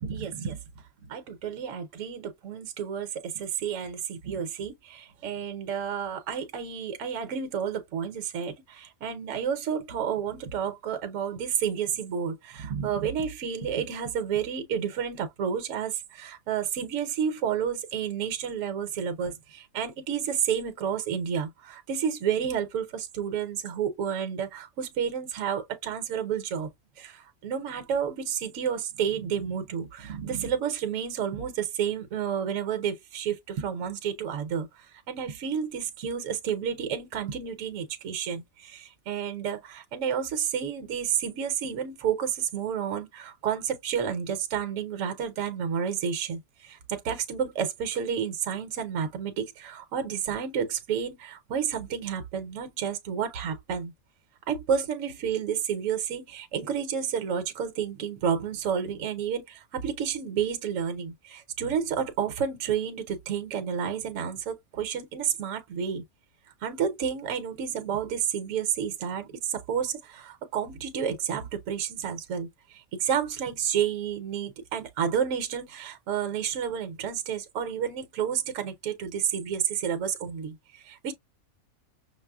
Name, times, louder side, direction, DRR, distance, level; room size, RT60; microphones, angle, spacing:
voice 1, 0.0-0.6 1.0-26.7 27.0-53.9 54.5-66.0 66.6-81.1, right 8 dB, 65° right, 1.1 m, -30 dB
5.9 x 2.0 x 2.3 m
omnidirectional pair, 1.5 m